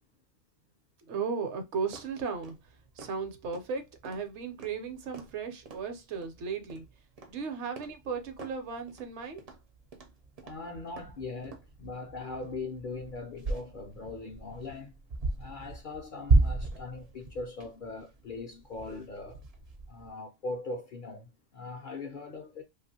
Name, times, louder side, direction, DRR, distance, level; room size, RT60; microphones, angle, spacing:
voice 1, 1.1-6.8 7.3-9.4, right 5 dB, 75° right, 0.9 m, -36 dB
sound 1, 1.8-20.1, right 3 dB, 45° right, 0.5 m, -35 dB
voice 2, 10.4-14.9 15.4-19.4 19.9-22.6, left 3 dB, 60° left, 0.5 m, -40 dB
2.8 x 2.4 x 2.6 m
omnidirectional pair, 1.2 m